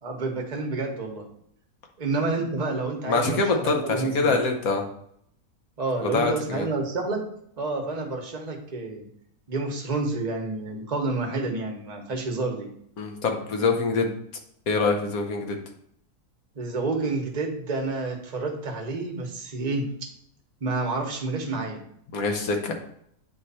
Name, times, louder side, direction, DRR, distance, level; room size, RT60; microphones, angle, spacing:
voice 1, 0.0-1.3 2.0-4.4 5.8-7.3 7.6-9.1 9.5-12.7 16.5-20.1 20.6-21.8, right 3 dB, 30° right, 2 dB, 1.0 m, -29 dB
voice 2, 3.1-4.8 6.0-6.7 13.0-14.1 14.7-15.6 22.1-22.7, left 3 dB, 65° left, 3 dB, 1.4 m, -24 dB
8.8 x 3.2 x 4.2 m, 0.69 s
omnidirectional pair, 1.7 m